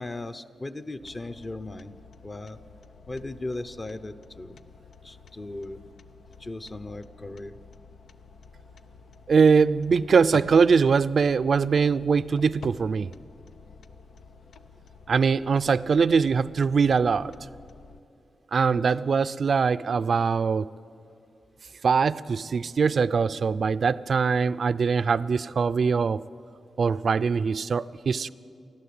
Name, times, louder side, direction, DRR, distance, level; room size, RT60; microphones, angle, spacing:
voice 1, 0.0-1.9 2.2-2.6 3.1-4.6 5.0-5.8 6.4-7.6 15.6-15.7 18.7-19.2, left 2 dB, 30° left, 11 dB, 0.8 m, -37 dB
sound 1, 1.0-18.0, left 5 dB, 90° left, 0.8 m, -49 dB
voice 2, 9.3-13.1 15.1-17.3 18.5-20.7 21.8-26.2 26.8-28.3, right 5 dB, 60° right, 14 dB, 0.5 m, -22 dB
29.0 x 12.0 x 8.6 m, 2.4 s
wide cardioid pair, 105°, 0 cm